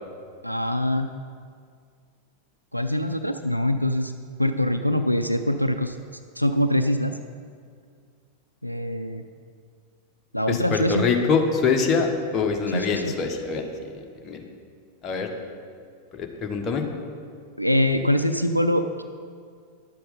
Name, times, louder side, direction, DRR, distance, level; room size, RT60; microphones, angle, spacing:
voice 1, 0.4-1.1 2.7-4.1 4.4-6.0 6.4-7.2 8.6-9.2 10.3-11.1 12.7-13.1 17.6-19.0, left 1 dB, 90° left, 8 dB, 0.4 m, -23 dB
voice 2, 10.5-13.7 14.2-14.4 15.0-15.3 16.1-16.8, left 5 dB, 25° left, 2 dB, 1.4 m, -24 dB
11.0 x 7.7 x 5.5 m, 2.1 s
figure-of-eight pair, 90°, 0 cm